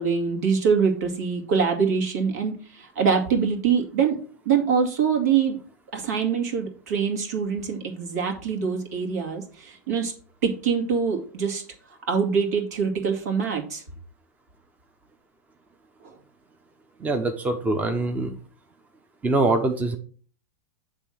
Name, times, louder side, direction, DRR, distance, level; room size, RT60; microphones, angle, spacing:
voice 1, 0.0-4.2 4.5-5.6 5.9-10.1 10.4-11.6 12.1-13.8, right 6 dB, 70° right, 1 dB, 2.3 m, -24 dB
voice 2, 17.0-18.3 19.2-20.0, right 2 dB, 15° right, 6 dB, 0.9 m, -23 dB
8.0 x 3.5 x 6.3 m, 0.42 s
hypercardioid pair, 100°, 9 cm